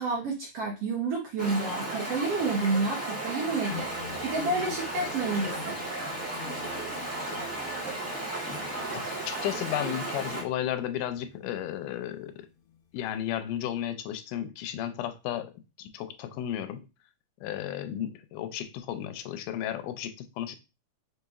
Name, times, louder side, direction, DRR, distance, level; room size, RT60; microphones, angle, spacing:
voice 1, 0.0-3.9 4.2-5.8, right 3 dB, 70° right, 1.5 m, -29 dB
Stream, 1.4-10.4, right 2 dB, 25° right, 0.3 m, -34 dB
sound 1, 3.7-13.3, left 10 dB, 70° left, 1.9 m, -48 dB
voice 2, 8.9-12.3 12.9-15.5 15.8-16.9 17.4-20.5, left 11 dB, 85° left, 2.1 m, -33 dB
5.1 x 3.9 x 2.4 m
omnidirectional pair, 3.6 m